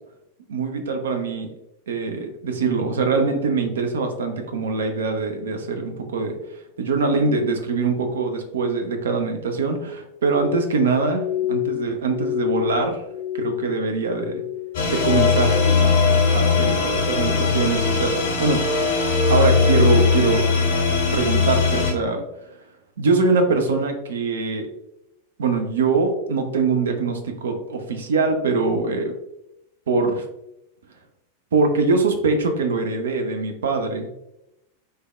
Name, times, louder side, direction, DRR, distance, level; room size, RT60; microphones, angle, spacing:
voice 1, 0.5-1.5 1.9-6.3 6.8-11.2 11.5-13.0 13.4-14.4 14.9-18.6 19.3-20.5 21.1-22.2 23.0-24.7 25.4-29.1 29.9-30.2 31.5-34.1, right 4 dB, 65° right, 5 dB, 0.4 m, -23 dB
Glass, 10.2-14.8 15.1-15.8 16.1-16.7 17.3-17.6, left 14 dB, 40° right, 1.4 m, -29 dB
sound 1, 14.7-21.9, left 4 dB, 55° left, 0.5 m, -19 dB
3.3 x 2.1 x 2.2 m, 0.87 s
figure-of-eight pair, 90°, 0 cm